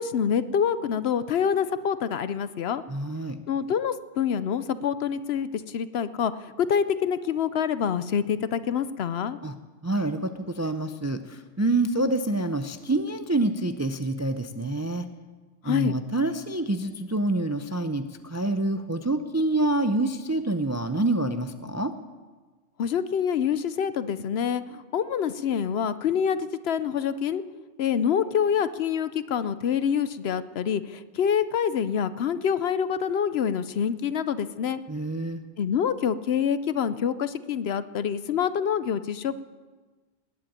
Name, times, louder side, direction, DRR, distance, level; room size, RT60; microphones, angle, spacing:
voice 1, 0.0-2.8 3.5-9.4 15.6-15.9 22.8-27.4 27.8-34.8 35.6-39.4, left 8 dB, 65° left, 14 dB, 0.9 m, -26 dB
voice 2, 2.9-3.4 9.4-9.5 9.8-15.1 15.6-21.9 34.9-35.4, right 2 dB, 25° right, 9 dB, 0.4 m, -27 dB
19.0 x 7.8 x 8.7 m, 1.3 s
omnidirectional pair, 1.2 m